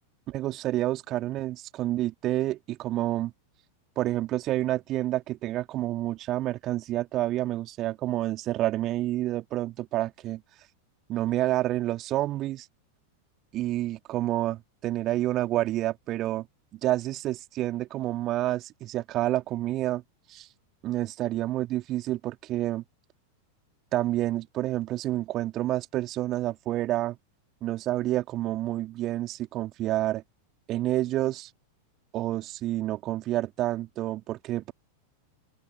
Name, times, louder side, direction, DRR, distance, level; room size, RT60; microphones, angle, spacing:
voice 1, 0.3-3.3 4.0-10.4 11.1-12.7 13.5-16.5 16.8-20.0 20.3-20.5 20.8-22.8 23.9-27.2 27.6-30.2 30.7-31.5 32.1-34.7, right 15 dB, 35° right, 2.8 m, -29 dB
figure-of-eight pair, 90°, 0 cm